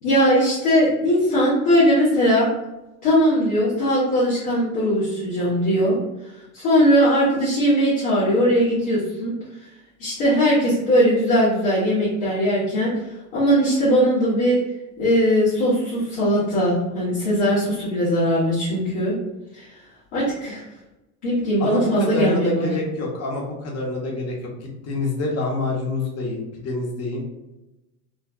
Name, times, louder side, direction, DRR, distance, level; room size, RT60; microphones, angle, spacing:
voice 1, 0.0-2.5 3.0-6.0 6.5-9.3 10.0-12.9 13.3-14.6 15.0-19.1 19.5-19.7 20.1-20.7 21.2-22.7, equal, 75° left, -10 dB, 1.3 m, -19 dB
voice 2, 21.6-27.3, left 2 dB, 35° left, -1 dB, 0.9 m, -27 dB
3.1 x 2.1 x 2.5 m, 0.98 s
hypercardioid pair, 85°, 45 cm